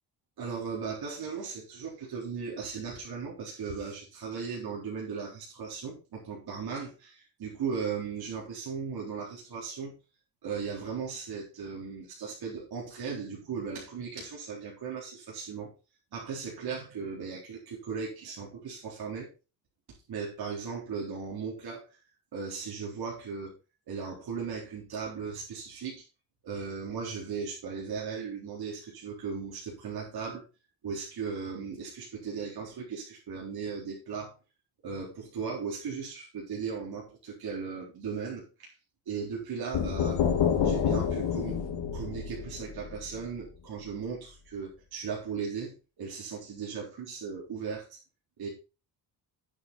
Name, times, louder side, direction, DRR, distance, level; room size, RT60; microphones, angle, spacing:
voice 1, 0.4-9.9 10.4-15.7 16.1-19.3 20.1-21.9 22.3-23.6 23.9-26.0 26.4-30.4 30.8-34.4 34.8-38.7 39.1-40.2 40.6-48.0 48.4-48.5, right 5 dB, 60° right, -3 dB, 4.1 m, -37 dB
sound 1, 39.7-43.5, left 8 dB, 75° left, 2.3 m, -28 dB
9.4 x 8.1 x 4.0 m, 0.31 s
cardioid pair, 100°, 42 cm